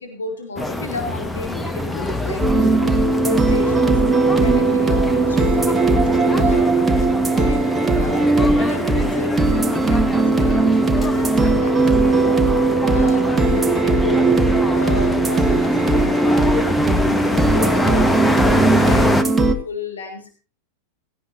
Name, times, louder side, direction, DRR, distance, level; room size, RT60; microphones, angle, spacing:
voice 1, 0.0-16.5 16.9-20.4, left 4 dB, 70° left, 5 dB, 3.6 m, -33 dB
sound 1, 0.6-19.2, left 1 dB, 10° left, 1.4 m, -24 dB
Guitar loop and drums, 2.4-19.5, right 3 dB, 10° right, 1.8 m, -18 dB
18.5 x 17.0 x 2.7 m, 0.33 s
figure-of-eight pair, 90°, 0 cm